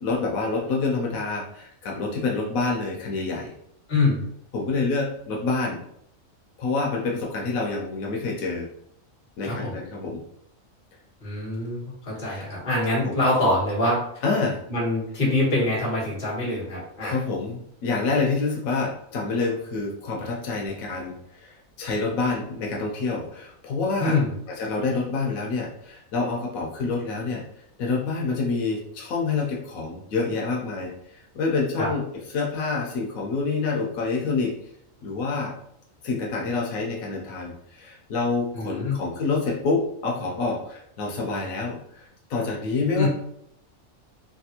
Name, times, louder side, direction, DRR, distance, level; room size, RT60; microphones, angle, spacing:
voice 1, 0.0-3.5 4.5-5.8 6.6-8.7 9.4-10.2 12.2-12.4 12.9-13.2 14.2-14.6 17.0-24.2 24.6-27.4 27.8-30.9 31.3-34.5 35.0-35.5 36.0-43.1, left 3 dB, 85° left, -1 dB, 1.1 m, -27 dB
voice 2, 3.9-4.2 9.4-9.7 11.2-14.0 14.4-17.1 24.0-24.3 31.8-31.9 38.5-39.0 42.9-43.1, left 2 dB, 40° left, -5 dB, 1.4 m, -24 dB
3.3 x 2.3 x 2.8 m, 0.72 s
omnidirectional pair, 1.4 m